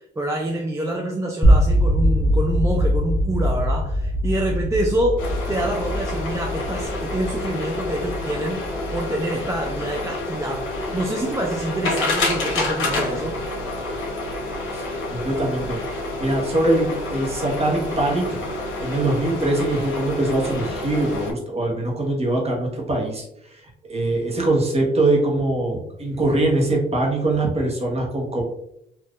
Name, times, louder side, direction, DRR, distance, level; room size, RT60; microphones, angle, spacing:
voice 1, 0.2-10.7 10.9-13.3, right 1 dB, 15° right, 0 dB, 0.4 m, -26 dB
sound 1, 1.4-11.4, equal, 15° left, 1.0 m, -23 dB
sound 2, 5.2-21.3, left 2 dB, 80° left, 1.0 m, -28 dB
voice 2, 15.1-18.4 18.8-28.4, right 2 dB, 30° right, -1 dB, 1.2 m, -23 dB
3.5 x 2.6 x 2.4 m, 0.77 s
cardioid pair, 90°, 20 cm